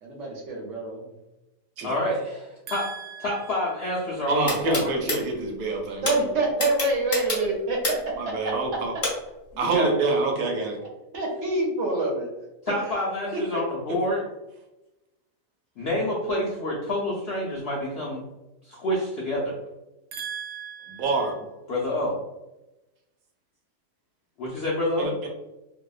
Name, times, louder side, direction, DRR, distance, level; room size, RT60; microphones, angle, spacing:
voice 1, 0.0-1.1 6.0-9.0 11.1-12.3 12.7-13.0 13.3-13.6 20.1-21.3, right 2 dB, 65° right, 0 dB, 0.8 m, -28 dB
voice 2, 1.8-2.9 3.2-4.9 9.6-9.9 12.7-14.2 15.8-18.2 18.6-19.6 21.7-22.2 24.4-25.1, left 1 dB, 75° left, -5 dB, 0.5 m, -28 dB
voice 3, 2.7-3.4 4.3-6.5 8.2-8.9 9.6-10.8 13.9-14.0 20.2-21.4 25.0-25.3, right 3 dB, 90° right, 1 dB, 1.1 m, -27 dB
sound 1, 4.5-5.2 6.0-6.1 6.6-8.1 9.0-9.1, left 2 dB, 40° left, 0.8 m, -26 dB
2.7 x 2.1 x 2.3 m, 1.0 s
omnidirectional pair, 1.6 m